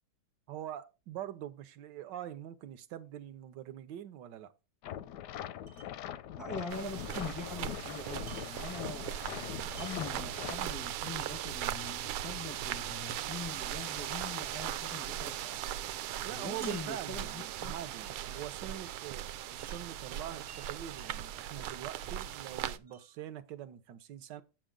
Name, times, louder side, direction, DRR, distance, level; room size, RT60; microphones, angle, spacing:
voice 1, 0.5-4.5 16.2-24.4, right 11 dB, 65° right, 1.3 m, -44 dB
sound 1, 4.8-10.6, left 11 dB, 75° left, 1.0 m, -42 dB
Wind chime, 5.7-6.0 6.6-10.1 10.8-11.6 12.5-12.7 13.8-18.7 19.6-21.1 21.7-23.2, right 5 dB, 40° right, 1.1 m, -57 dB
voice 2, 6.4-15.6 16.3-17.7, left 3 dB, 15° left, 0.6 m, -43 dB
sound 2, 6.7-22.8, right 11 dB, 80° right, 1.4 m, -39 dB
9.0 x 7.0 x 3.7 m
omnidirectional pair, 2.3 m